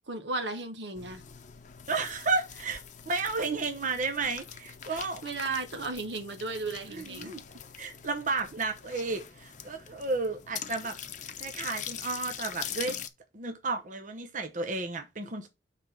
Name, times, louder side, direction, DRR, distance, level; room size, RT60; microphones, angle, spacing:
voice 1, 0.1-1.2 4.9-7.4, right 3 dB, 80° right, 1.4 m, -35 dB
sound 1, 0.9-13.1, left 8 dB, 45° left, 0.7 m, -43 dB
voice 2, 1.9-5.2 6.9-7.4 7.8-11.0 11.4-13.0 13.3-15.5, right 3 dB, 45° right, 0.8 m, -32 dB
5.9 x 4.1 x 5.9 m
head